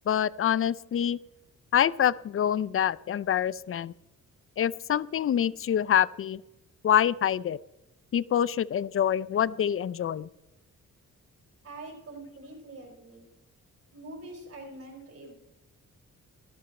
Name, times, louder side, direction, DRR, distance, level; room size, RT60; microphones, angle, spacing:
voice 1, 0.1-1.2 1.7-3.9 4.6-6.4 6.8-7.6 8.1-10.3, left 9 dB, 45° left, 20 dB, 0.4 m, -26 dB
voice 2, 11.6-13.3 13.9-15.3, right 2 dB, 45° right, 2 dB, 4.5 m, -44 dB
12.5 x 12.0 x 4.3 m, 0.94 s
cardioid pair, 100°, 32 cm